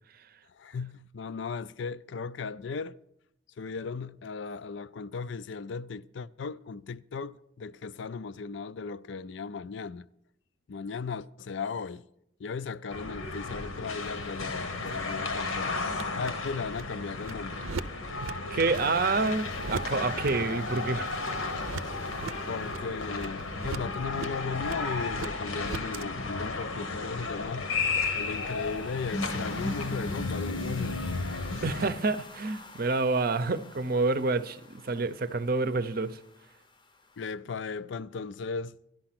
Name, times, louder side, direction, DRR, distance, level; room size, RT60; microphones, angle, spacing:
voice 1, 0.5-3.0 3.6-10.1 10.7-12.0 12.4-17.6 22.5-27.7 28.1-31.0 37.2-38.8, left 5 dB, 65° left, 0.4 m, -36 dB
sound 1, 12.9-31.9, left 3 dB, 90° left, 1.4 m, -34 dB
sound 2, 14.0-26.0, right 4 dB, 85° right, 0.6 m, -42 dB
voice 2, 18.5-21.1 31.6-36.2, right 3 dB, 45° right, 0.6 m, -28 dB
sound 3, 18.7-37.3, left 2 dB, 20° left, 0.7 m, -49 dB
12.0 x 11.5 x 5.9 m
head